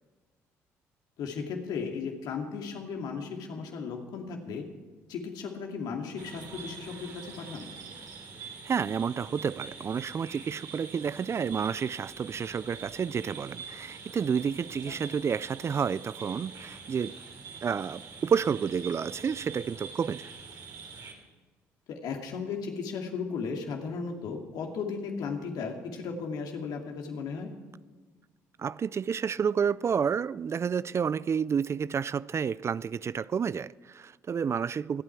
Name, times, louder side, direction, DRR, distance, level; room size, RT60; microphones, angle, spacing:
voice 1, 1.2-4.6 5.1-7.7 14.9-15.0 21.9-27.5, left 5 dB, 70° left, 2.4 m, -35 dB
sound 1, 6.2-21.1, right 5 dB, 65° right, 3.3 m, -45 dB
voice 2, 8.6-17.2 17.6-20.3 28.6-35.0, right 7 dB, 40° right, 0.4 m, -30 dB
25.5 x 9.0 x 4.7 m
hypercardioid pair, 55°, 7 cm